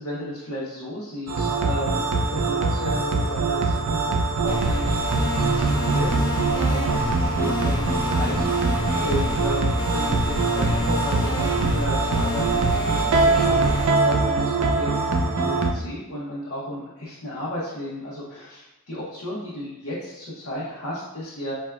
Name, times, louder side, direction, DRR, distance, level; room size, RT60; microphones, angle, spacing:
voice 1, 0.0-15.1 15.3-21.5, left 1 dB, 70° left, -8 dB, 0.8 m, -34 dB
sound 1, 1.3-15.7, right 3 dB, 85° right, 0.4 m, -23 dB
sound 2, 4.5-13.9, left 2 dB, 20° left, 0.5 m, -29 dB
4.4 x 2.1 x 2.3 m, 0.95 s
head